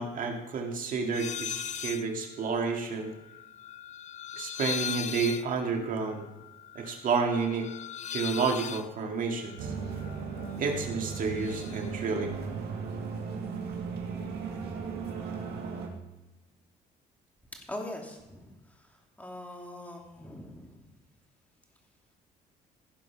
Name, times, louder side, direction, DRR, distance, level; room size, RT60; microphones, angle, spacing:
voice 1, 0.0-3.1 4.4-6.3 6.7-7.7 8.1-9.7 10.6-12.4, right 4 dB, 55° right, 3 dB, 2.2 m, -30 dB
sound 1, 1.1-2.1 2.4-10.6 10.9-11.9, left 9 dB, 45° left, 0.5 m, -39 dB
sound 2, 9.6-15.9, right 5 dB, 75° right, 2.1 m, -36 dB
voice 2, 17.7-18.5 19.2-20.9, left 1 dB, 10° left, 1 dB, 2.4 m, -41 dB
15.5 x 5.5 x 5.8 m, 1.0 s
cardioid pair, 110°, 17 cm